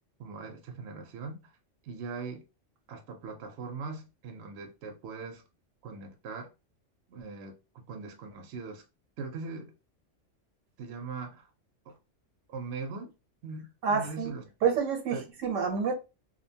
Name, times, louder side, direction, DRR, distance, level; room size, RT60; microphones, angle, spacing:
voice 1, 0.2-1.5 1.8-2.4 2.9-5.4 5.8-6.5 7.1-8.8 9.2-9.7 10.8-11.5 11.9-12.0 12.5-13.1 13.4-14.4 15.1-15.2, right 4 dB, 65° right, 0.9 m, -40 dB
voice 2, 13.8-14.3 14.6-15.9, right 6 dB, 90° right, 1.1 m, -28 dB
2.7 x 2.1 x 2.7 m
omnidirectional pair, 1.3 m